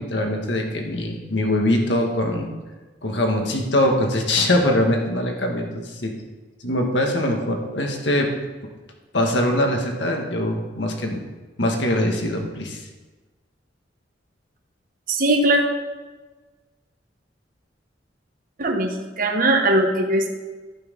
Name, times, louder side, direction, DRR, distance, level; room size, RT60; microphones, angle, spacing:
voice 1, 0.0-2.5 3.0-6.2 6.6-8.3 9.1-11.2 11.6-12.9, left 1 dB, 70° left, 2 dB, 1.8 m, -22 dB
voice 2, 15.1-15.6 18.6-20.3, right 1 dB, 50° right, 2 dB, 1.2 m, -20 dB
11.5 x 8.7 x 5.4 m, 1.3 s
head